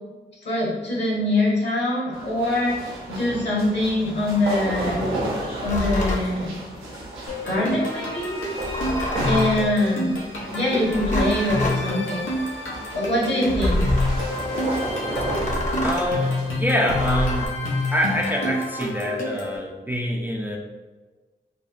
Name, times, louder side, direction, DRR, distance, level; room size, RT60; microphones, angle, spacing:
voice 1, 0.4-5.1 5.6-6.5 7.4-8.3 9.2-10.2 10.5-12.2 12.9-13.9, left 1 dB, 60° left, -6 dB, 1.5 m, -24 dB
sound 1, 2.1-16.5, right 1 dB, 90° right, 0.7 m, -33 dB
sound 2, 5.6-6.3 8.6-9.7 10.8-11.8 13.5-14.2 15.1-16.1 16.9-17.5, left 1 dB, 40° left, 0.8 m, -26 dB
sound 3, 7.3-19.6, left 1 dB, 90° left, 0.7 m, -28 dB
voice 2, 15.8-17.5 17.9-20.6, equal, 10° right, -1 dB, 0.4 m, -25 dB
3.5 x 2.1 x 2.5 m, 1.3 s
cardioid pair, 40°, 20 cm